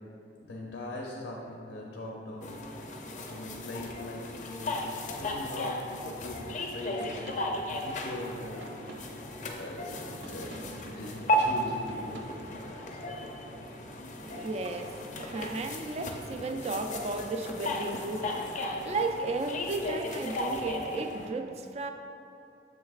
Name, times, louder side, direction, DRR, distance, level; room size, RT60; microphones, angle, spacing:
voice 1, 0.5-2.6 2.8-7.3 7.7-8.7 9.0-9.2 9.5-12.1 12.6-13.6 14.2-14.5, left 1 dB, 85° left, -2 dB, 0.7 m, -41 dB
sound 1, 2.4-21.3, left 1 dB, 40° left, 0.5 m, -35 dB
sound 2, 7.0-13.3, right 2 dB, 90° right, 0.5 m, -49 dB
voice 2, 14.2-21.9, right 3 dB, 35° right, 6 dB, 0.3 m, -34 dB
7.2 x 6.1 x 2.4 m, 2.7 s
head